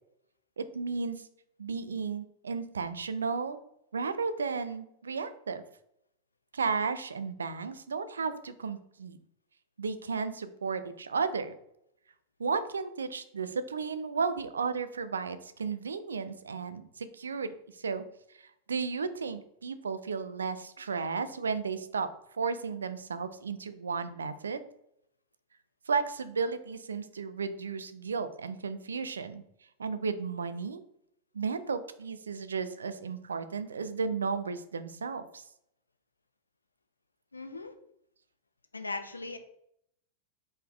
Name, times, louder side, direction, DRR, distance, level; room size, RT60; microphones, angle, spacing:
voice 1, 0.6-1.3 1.6-3.6 3.9-5.6 6.5-9.2 9.8-11.5 12.4-18.0 18.4-22.1 22.4-24.6 25.9-29.4 29.8-30.8 31.3-35.4, right 5 dB, 70° right, 12 dB, 0.4 m, -34 dB
voice 2, 37.3-37.7 38.7-39.4, left 3 dB, 80° left, 8 dB, 0.5 m, -38 dB
4.1 x 3.8 x 3.5 m, 0.76 s
figure-of-eight pair, 90°, 0 cm